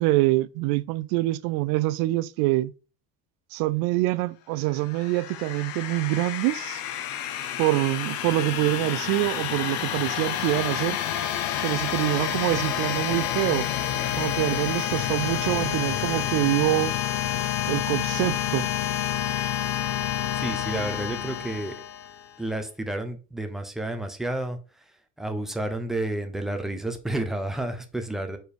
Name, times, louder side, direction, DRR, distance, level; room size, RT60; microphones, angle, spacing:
voice 1, 0.0-2.7 3.5-6.8 7.6-11.0 11.6-13.7 14.1-17.0 17.7-18.7, right 18 dB, 80° right, 0.5 m, -25 dB
sound 1, 4.7-22.3, left 11 dB, 80° left, 1.0 m, -29 dB
voice 2, 20.3-21.8 22.4-28.4, right 1 dB, ahead, 0.8 m, -31 dB
4.6 x 4.5 x 5.1 m
cardioid pair, 140°, 35 cm